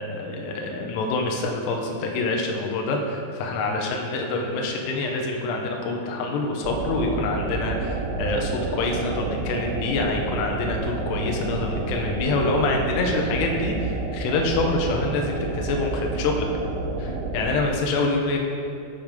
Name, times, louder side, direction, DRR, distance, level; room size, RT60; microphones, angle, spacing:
voice 1, 0.0-16.5 17.0-18.4, left 3 dB, 85° left, 1 dB, 2.5 m, -26 dB
sound 1, 6.6-17.7, right 3 dB, 90° right, 3.1 m, -29 dB
7.3 x 4.6 x 5.1 m, 2.6 s
omnidirectional pair, 5.5 m